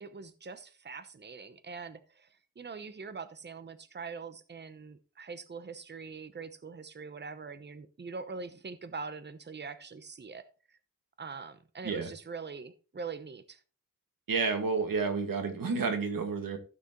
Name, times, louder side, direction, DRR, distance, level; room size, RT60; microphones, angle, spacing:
voice 1, 0.0-2.3 2.6-10.4 10.7-10.8 11.2-13.6, right 4 dB, 30° right, 11 dB, 0.9 m, -43 dB
voice 2, 14.3-16.6, right 4 dB, 85° right, 5 dB, 1.9 m, -30 dB
15.0 x 6.2 x 3.1 m, 0.36 s
wide cardioid pair, 120°, 33 cm